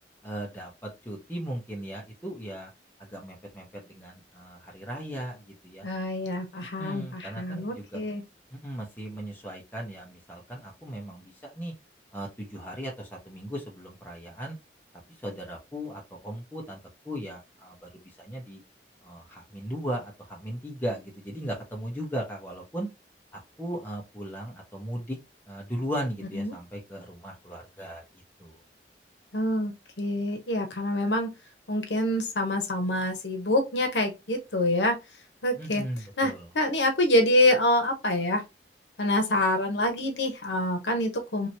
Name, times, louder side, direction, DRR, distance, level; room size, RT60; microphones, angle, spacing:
voice 1, 0.2-2.7 3.0-5.8 6.8-8.1 8.5-11.7 12.1-14.6 15.2-16.8 17.0-17.9 18.2-18.6 19.0-22.9 23.6-25.2 25.5-28.0 28.4-28.6 35.6-36.5, equal, 10° left, 1.0 m, -37 dB
voice 2, 5.8-8.2 26.3-26.5 29.3-31.3 31.7-35.0 35.4-35.8 36.2-38.4 39.0-41.5, left 1 dB, 80° left, 0.9 m, -26 dB
3.0 x 2.9 x 2.8 m
head